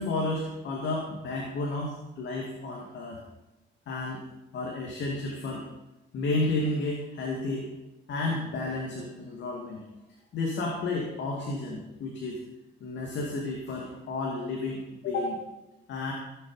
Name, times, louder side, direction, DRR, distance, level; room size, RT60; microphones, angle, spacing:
voice 1, 0.0-3.2 3.9-4.2 4.5-5.7 6.1-7.7 8.1-9.8 10.3-12.4 12.8-15.4 15.9-16.1, left 2 dB, 70° left, -1 dB, 2.4 m, -32 dB
16.0 x 7.7 x 5.6 m, 0.97 s
cardioid pair, 90°, 19 cm